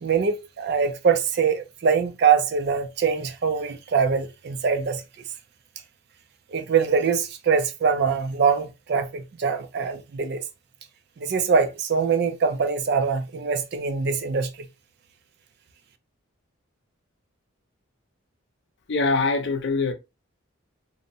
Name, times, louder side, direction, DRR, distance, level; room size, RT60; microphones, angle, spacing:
voice 1, 0.0-5.0 6.5-10.4 11.2-14.5, right 6 dB, 50° right, 0.4 m, -23 dB
voice 2, 18.9-19.9, left 3 dB, 55° left, 0.5 m, -23 dB
2.6 x 2.0 x 2.6 m
head